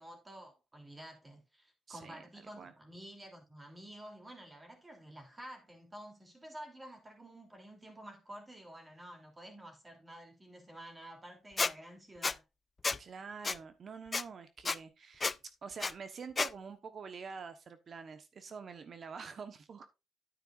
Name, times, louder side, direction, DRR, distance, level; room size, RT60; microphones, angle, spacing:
voice 1, 0.0-12.4, right 1 dB, 20° right, 3.1 m, -51 dB
voice 2, 1.9-2.2 2.6-2.7 13.0-19.9, right 5 dB, 50° right, 1.1 m, -46 dB
Squeak, 11.6-11.7 12.2-12.3 12.8-13.0 13.4-13.6 14.1-14.2 14.6-14.8 15.2-15.3 15.8-15.9 16.4-16.5, left 4 dB, 30° left, 0.3 m, -31 dB
9.2 x 9.0 x 2.5 m
cardioid pair, 90°, 0 cm